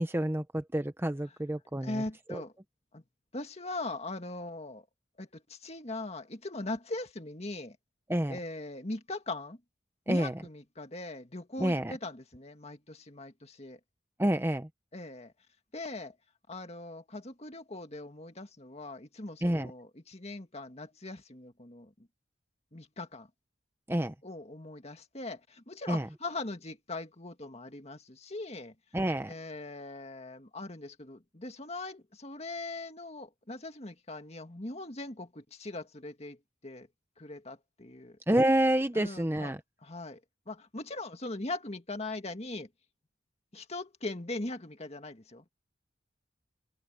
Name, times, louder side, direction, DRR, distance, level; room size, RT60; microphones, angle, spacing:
voice 1, 0.0-2.0 2.3-2.4 8.1-8.4 10.1-10.3 11.6-11.9 14.2-14.7 19.4-19.7 23.9-24.1 25.9-26.1 28.9-29.3 38.3-39.6, right 1 dB, 10° right, 0.8 m, -28 dB
voice 2, 1.8-2.5 2.9-3.0 3.3-4.9 5.2-7.8 8.3-9.6 10.1-13.8 14.9-15.3 15.7-16.1 16.5-21.9 22.7-23.3 23.9-28.7 29.3-36.4 36.6-36.9 37.2-38.2 38.9-39.5 39.8-40.2 40.5-42.7 43.5-45.5, left 2 dB, 35° left, 2.0 m, -40 dB
head